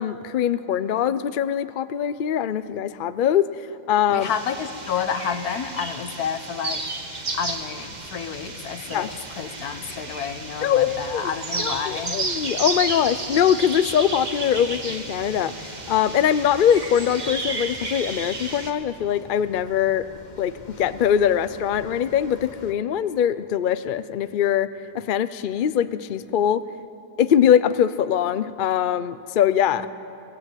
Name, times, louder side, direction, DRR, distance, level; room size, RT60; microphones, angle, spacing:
voice 1, 0.0-3.5 3.9-4.3 8.9-9.1 10.6-11.2 11.6-20.1 20.4-24.7 24.9-26.6 27.2-29.9, left 9 dB, 55° left, 13 dB, 0.5 m, -22 dB
voice 2, 4.1-6.9 7.3-12.2 29.7-29.9, left 7 dB, 80° left, 10 dB, 1.5 m, -30 dB
sound 1, 4.2-18.7, right 3 dB, 30° right, 1.5 m, -32 dB
sound 2, 7.3-22.7, left 3 dB, 30° left, 1.2 m, -47 dB
23.0 x 16.5 x 9.1 m, 2.8 s
omnidirectional pair, 1.6 m